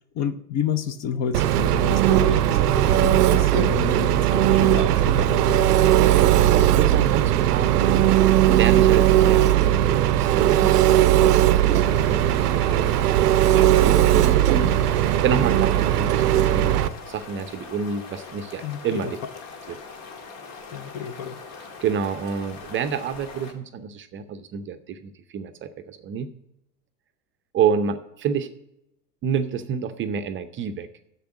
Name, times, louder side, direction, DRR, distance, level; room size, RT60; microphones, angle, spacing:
voice 1, 0.1-5.8 18.6-19.1 20.7-21.4, left 8 dB, 35° left, 0.7 m, -30 dB
Engine, 1.3-16.9, right 12 dB, 80° right, 0.6 m, -18 dB
voice 2, 6.2-8.1 8.5-14.7 15.0-19.2 19.7-19.8 21.8-26.3 27.5-28.5 29.2-30.9, right 7 dB, 25° right, 0.6 m, -28 dB
sound 1, 11.7-23.5, left 4 dB, 55° left, 1.8 m, -41 dB
7.2 x 6.9 x 7.4 m
hypercardioid pair, 90°, 46 cm